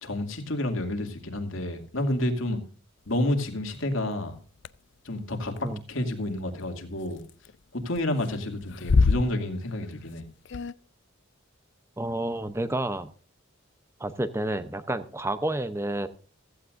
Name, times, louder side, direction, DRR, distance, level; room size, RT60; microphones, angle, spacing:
voice 1, 0.0-2.6 3.1-4.4 5.0-7.2 7.7-10.3, left 1 dB, 75° left, 4 dB, 2.5 m, -29 dB
sound 1, 3.7-3.8 4.6-4.7 5.5-5.6 7.1-7.6 7.8-8.3 8.6-9.9 10.2-10.3 10.5-10.7, left 4 dB, 60° left, 0.5 m, -25 dB
voice 2, 12.0-13.1 14.0-16.1, right 1 dB, 15° right, 11 dB, 0.7 m, -30 dB
16.0 x 14.5 x 2.6 m, 0.40 s
head